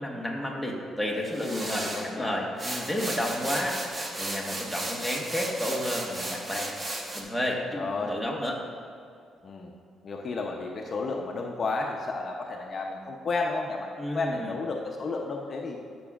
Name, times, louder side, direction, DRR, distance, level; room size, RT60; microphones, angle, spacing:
voice 1, 0.0-3.8 4.1-6.7 7.1-8.6 14.0-14.5, left 1 dB, 5° right, -2 dB, 1.5 m, -31 dB
sound 1, 1.3-2.1 2.6-7.2, right 1 dB, 25° right, 1.1 m, -34 dB
voice 2, 1.4-2.4 2.7-2.9 7.7-8.2 9.4-9.7 10.0-15.8, left 3 dB, 45° left, 1 dB, 0.7 m, -32 dB
12.5 x 6.1 x 2.5 m, 2.4 s
cardioid pair, 90°, 0 cm